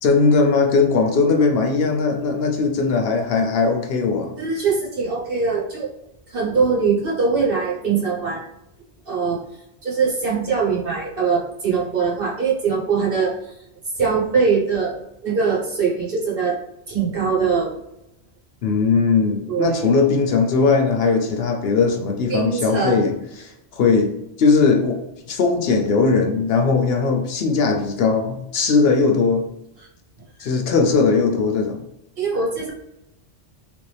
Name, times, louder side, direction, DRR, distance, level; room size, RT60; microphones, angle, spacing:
voice 1, 0.0-4.6 18.6-24.1 24.4-25.0 25.3-29.5 30.4-31.8, left 4 dB, 65° left, 3 dB, 0.8 m, -19 dB
voice 2, 4.4-5.9 6.3-8.4 9.1-9.4 9.8-13.5 13.9-16.6 16.9-17.7 19.5-20.0 22.3-23.1 30.4-30.5 32.2-32.7, right 5 dB, 55° right, -5 dB, 1.2 m, -22 dB
3.3 x 2.6 x 3.2 m, 0.85 s
omnidirectional pair, 1.1 m